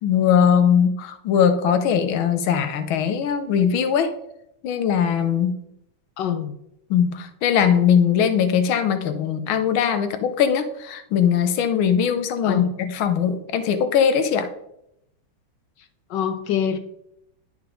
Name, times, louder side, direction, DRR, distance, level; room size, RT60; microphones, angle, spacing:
voice 1, 0.0-4.2 4.6-5.6 6.9-14.5, left 8 dB, 90° left, 9 dB, 1.6 m, -20 dB
voice 2, 6.2-6.5 12.4-12.7 16.1-16.8, left 9 dB, 70° left, 9 dB, 1.1 m, -25 dB
11.0 x 4.6 x 3.7 m, 0.80 s
omnidirectional pair, 2.2 m